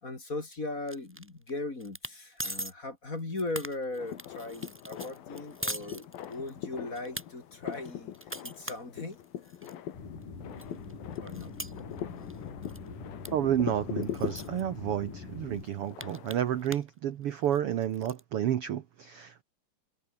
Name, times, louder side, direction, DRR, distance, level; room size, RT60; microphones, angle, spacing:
voice 1, 0.0-8.1 8.4-9.2 11.2-11.6, left 2 dB, 25° left, 3.3 m, -38 dB
sound 1, 0.9-1.5 1.8-2.1 2.4-2.7 3.2-6.5 6.9-7.2 7.7-9.7 10.2-10.3 10.6-12.4 12.6-12.9 13.2-13.3 13.6-13.7 14.0-14.6 15.2-15.3 15.5-16.9 17.2-18.2, equal, 5° right, 3.4 m, -41 dB
sound 2, 4.0-16.7, left 11 dB, 90° left, 3.7 m, -42 dB
sound 3, 9.9-15.7, left 4 dB, 60° left, 7.4 m, -44 dB
voice 2, 13.3-19.4, right 10 dB, 65° right, 1.4 m, -30 dB
omnidirectional pair, 4.0 m